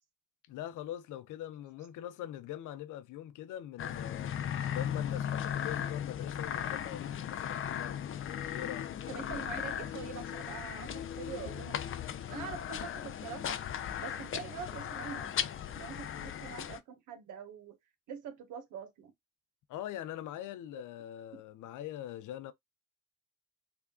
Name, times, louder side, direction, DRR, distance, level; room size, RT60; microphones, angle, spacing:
voice 1, 0.5-4.3 4.7-8.0 8.5-8.9 19.7-22.5, left 12 dB, 85° left, 0.6 m, -42 dB
sound 1, 3.8-16.8, left 9 dB, 45° left, 0.5 m, -37 dB
voice 2, 9.1-11.8 12.3-13.6 14.0-15.5 15.8-17.8 18.1-19.1 20.7-20.8, right 7 dB, 85° right, 1.0 m, -44 dB
3.5 x 2.2 x 3.6 m
cardioid pair, 90°, 30 cm